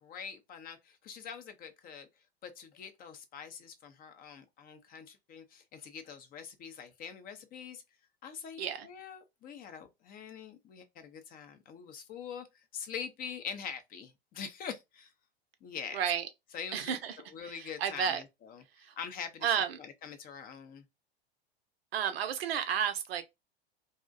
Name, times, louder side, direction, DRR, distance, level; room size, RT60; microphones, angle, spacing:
voice 1, 0.0-2.1 2.4-7.8 8.2-12.5 12.7-15.1 15.6-16.0 16.5-16.9 17.3-20.8, left 7 dB, 30° left, 0.5 m, -44 dB
voice 2, 15.9-16.3 16.7-17.2 17.4-18.2 18.8-18.9 19.4-19.8 21.9-23.2, right 8 dB, 70° right, 0.6 m, -32 dB
2.5 x 2.1 x 2.4 m
hypercardioid pair, 90°, 31 cm